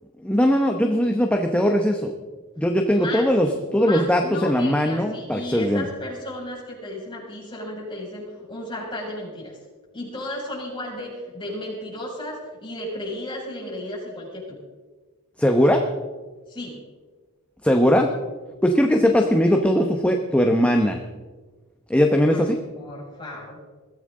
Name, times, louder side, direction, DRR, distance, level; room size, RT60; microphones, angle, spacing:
voice 1, 0.2-2.1 2.6-5.8 15.4-15.8 17.6-18.1 18.6-21.0 21.9-22.6, equal, 5° left, 3 dB, 0.9 m, -20 dB
voice 2, 2.9-3.3 3.7-9.6 9.9-14.6 16.5-16.8 22.3-22.5 22.8-23.6, left 1 dB, 20° left, -4 dB, 6.3 m, -34 dB
21.5 x 15.0 x 3.8 m, 1.3 s
head